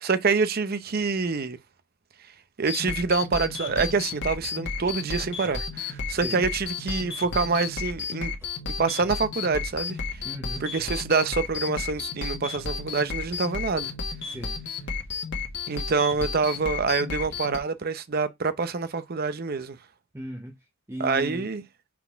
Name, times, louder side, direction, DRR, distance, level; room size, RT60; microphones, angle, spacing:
voice 1, 0.0-1.6 2.6-8.3 8.8-10.0 10.6-13.9 15.7-19.8 21.0-21.6, right 4 dB, 45° right, 0.6 m, -26 dB
sound 1, 2.7-17.6, left 5 dB, 55° left, 1.5 m, -33 dB
voice 2, 6.1-6.4 10.2-10.6 14.2-14.6 20.1-20.5 20.9-21.5, equal, 10° right, 0.7 m, -36 dB
5.9 x 4.0 x 4.5 m
head